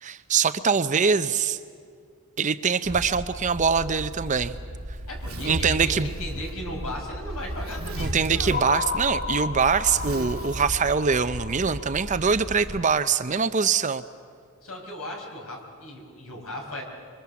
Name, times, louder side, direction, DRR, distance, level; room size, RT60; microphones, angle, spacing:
voice 1, 0.0-1.6 2.4-4.6 5.4-6.1 8.0-14.0, right 5 dB, 35° right, 11 dB, 0.6 m, -23 dB
Zipper (clothing), 2.9-12.8, equal, 70° right, 2.5 m, -35 dB
voice 2, 5.1-8.6 14.6-16.8, left 1 dB, 70° left, 1 dB, 5.2 m, -37 dB
sound 1, 8.5-12.7, left 5 dB, 35° left, 0.9 m, -33 dB
26.0 x 23.5 x 7.1 m, 2.1 s
head